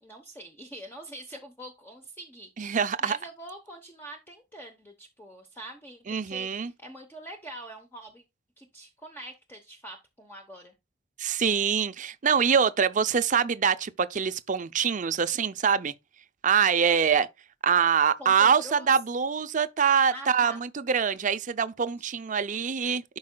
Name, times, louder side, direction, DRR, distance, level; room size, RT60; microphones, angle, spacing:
voice 1, 0.0-8.2 8.6-10.7 18.2-18.9 20.1-20.6 22.0-22.1, right 1 dB, 10° left, 0.9 m, -44 dB
voice 2, 2.6-3.2 6.1-6.7 11.2-15.9 16.4-17.3 17.6-23.2, right 6 dB, 40° right, 0.5 m, -24 dB
11.5 x 4.8 x 2.2 m
head